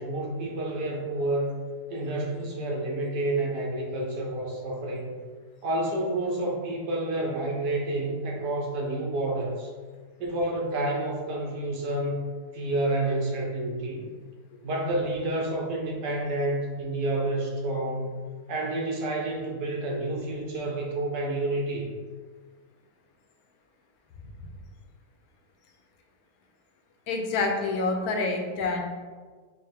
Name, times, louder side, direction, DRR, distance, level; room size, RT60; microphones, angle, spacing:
voice 1, 0.0-1.5 1.9-5.2 5.6-9.7 10.2-12.2 12.5-14.0 14.6-18.1 18.5-21.9, right 2 dB, 90° right, -2 dB, 1.4 m, -29 dB
voice 2, 27.1-28.8, left 3 dB, 70° left, 2 dB, 1.0 m, -27 dB
5.4 x 2.1 x 3.4 m, 1.5 s
omnidirectional pair, 1.8 m